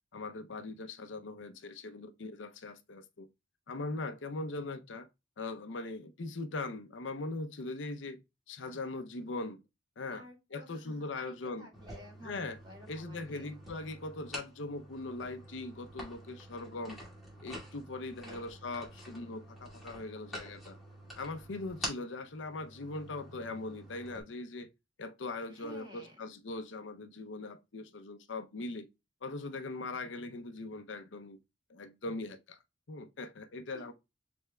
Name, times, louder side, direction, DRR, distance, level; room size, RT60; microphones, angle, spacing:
voice 1, 0.1-3.3 3.7-5.1 5.4-8.2 8.5-9.6 10.0-10.2 10.5-11.7 12.2-12.6 12.9-17.0 17.4-20.8 21.2-24.7 25.0-28.9 29.2-31.4 31.7-32.6 32.9-33.9, left 2 dB, 80° left, 0.7 m, -40 dB
voice 2, 10.1-13.5 18.2-18.5 25.5-26.3 33.7-33.9, right 1 dB, 25° right, 2.2 m, -53 dB
sound 1, 11.7-24.2, equal, ahead, 2.4 m, -47 dB
6.5 x 3.5 x 2.3 m
head